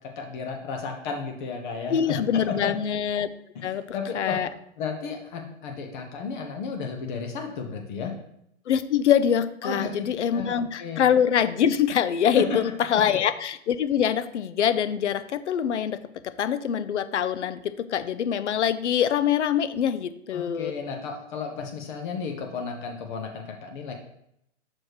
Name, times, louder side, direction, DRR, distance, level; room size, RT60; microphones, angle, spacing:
voice 1, 0.2-2.7 3.5-4.3 4.8-8.1 9.6-11.0 12.3-12.6 12.9-13.0 20.3-23.9, left 5 dB, 40° left, 3 dB, 1.1 m, -33 dB
voice 2, 1.9-3.3 3.6-3.8 4.1-4.5 8.7-20.7, left 9 dB, 70° left, 13 dB, 0.7 m, -24 dB
6.4 x 4.3 x 4.8 m, 0.76 s
hypercardioid pair, 135°, 36 cm